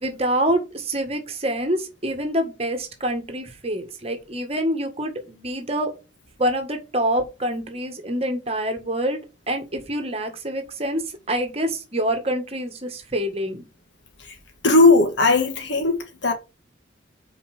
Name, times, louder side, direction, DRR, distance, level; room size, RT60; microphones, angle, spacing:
voice 1, 0.0-5.9 6.4-9.2 9.5-11.0 11.3-13.6, right 1 dB, 35° right, 1.6 m, -26 dB
voice 2, 14.6-16.3, left 3 dB, 70° left, 1.7 m, -17 dB
5.6 x 4.5 x 5.9 m
head